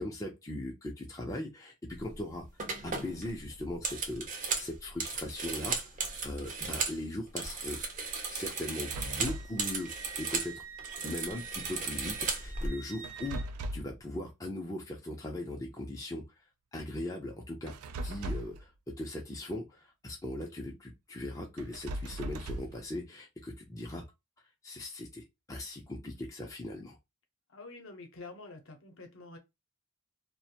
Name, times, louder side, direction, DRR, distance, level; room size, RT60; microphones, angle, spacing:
voice 1, 0.0-2.5 2.8-5.8 6.2-7.8 8.3-9.9 10.2-10.6 11.0-13.4 13.7-16.2 16.7-17.7 18.0-24.0 24.6-27.0, left 1 dB, 15° left, 0.4 m, -39 dB
sound 1, 2.0-2.2 2.6-7.0 7.3-10.5 10.8-12.7, right 4 dB, 35° right, 0.5 m, -36 dB
Wind instrument woodwind instrument, 7.7-13.5, right 6 dB, 60° right, 0.8 m, -49 dB
sound 2, 8.8-9.6 13.0-14.0 17.7-18.6 21.6-22.8, right 1 dB, 90° right, 0.3 m, -38 dB
voice 2, 27.5-29.4, left 3 dB, 60° left, 0.7 m, -47 dB
2.4 x 2.1 x 2.7 m
head